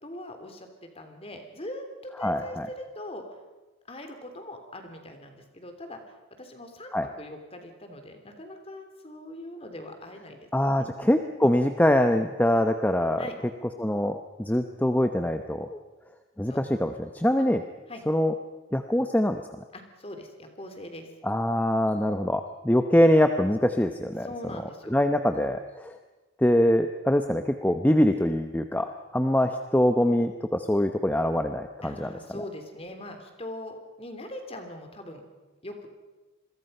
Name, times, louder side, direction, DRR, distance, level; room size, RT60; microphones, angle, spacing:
voice 1, 0.0-3.4 3.9-6.0 6.4-10.9 13.2-13.4 16.5-16.6 17.4-17.5 17.9-18.0 19.7-21.1 24.2-25.0 31.8-35.2 35.6-35.9, left 1 dB, 30° left, 6 dB, 3.1 m, -41 dB
voice 2, 2.2-2.7 6.9-7.1 10.5-13.3 13.8-15.8 16.4-17.6 18.1-18.3 18.7-19.4 21.2-24.3 24.9-25.9 26.4-28.9 29.1-32.1, left 1 dB, 10° left, 7 dB, 0.8 m, -23 dB
27.5 x 22.0 x 5.5 m, 1.2 s
head